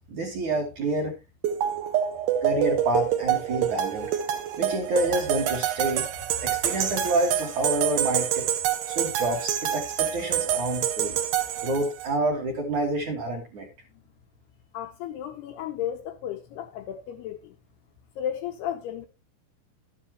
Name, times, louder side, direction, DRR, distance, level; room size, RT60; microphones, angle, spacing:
voice 1, 0.1-1.2 2.4-4.1 4.6-6.0 6.4-8.5 8.9-11.2 11.6-13.7, right 2 dB, 55° right, 2.3 m, -28 dB
sound 1, 1.4-12.1, right 10 dB, 70° right, 2.5 m, -27 dB
voice 2, 14.7-17.6 18.2-19.1, left 10 dB, 85° left, 2.3 m, -34 dB
11.5 x 10.0 x 3.0 m
omnidirectional pair, 5.7 m